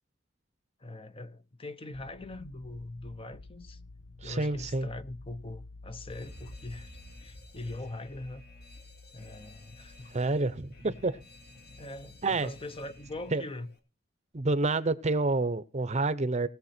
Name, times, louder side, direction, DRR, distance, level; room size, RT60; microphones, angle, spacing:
voice 1, 0.8-3.8 4.2-8.4 9.1-10.1 10.8-11.0 11.8-13.7, left 2 dB, 30° left, 0.8 m, -42 dB
sound 1, 1.9-13.3, left 2 dB, 90° left, 0.8 m, -51 dB
voice 2, 4.2-4.9 10.1-11.2 12.2-12.5 13.3-13.4 14.3-16.5, right 3 dB, 35° right, 0.8 m, -28 dB
Alarm, 6.1-13.8, left 1 dB, 55° left, 2.0 m, -53 dB
19.0 x 7.1 x 4.3 m
head